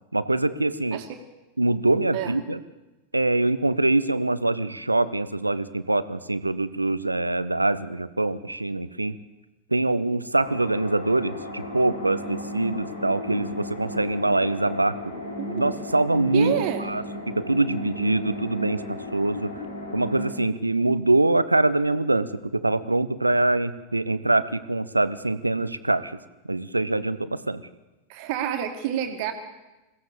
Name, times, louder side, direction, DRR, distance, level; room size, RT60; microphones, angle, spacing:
voice 1, 0.1-1.0 1.6-2.6 3.1-9.2 9.7-15.0 15.5-16.5 16.8-19.5 19.9-26.2 26.5-27.6, right 2 dB, 85° right, 15 dB, 0.9 m, -24 dB
sound 1, 10.3-20.3, left 1 dB, 75° left, 5.1 m, -35 dB
voice 2, 15.4-15.8 16.3-16.9 28.1-29.3, right 10 dB, 45° right, 6 dB, 2.3 m, -28 dB
22.0 x 16.0 x 8.5 m, 1.1 s
figure-of-eight pair, 90°, 0 cm